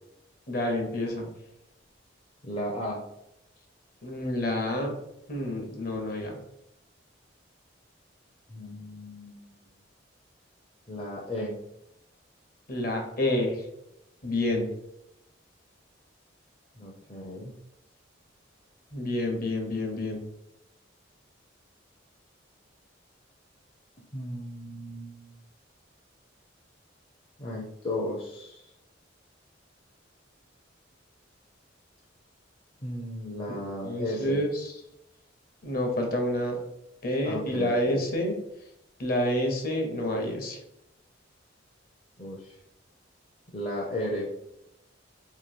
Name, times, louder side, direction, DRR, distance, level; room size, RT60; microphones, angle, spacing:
voice 1, 0.5-1.3 4.0-4.9 5.3-6.3 12.7-13.6 14.2-14.7 18.9-20.2 33.5-34.7 35.6-36.6 37.0-38.3 39.0-40.6, left 1 dB, 50° left, 2 dB, 0.8 m, -28 dB
voice 2, 2.4-3.0 8.5-9.8 10.9-11.6 16.8-17.6 24.1-25.4 27.4-28.7 32.8-34.4 37.2-38.0 42.2-42.6 43.5-44.3, left 1 dB, 30° left, -3 dB, 0.5 m, -35 dB
3.0 x 2.7 x 4.2 m, 0.82 s
head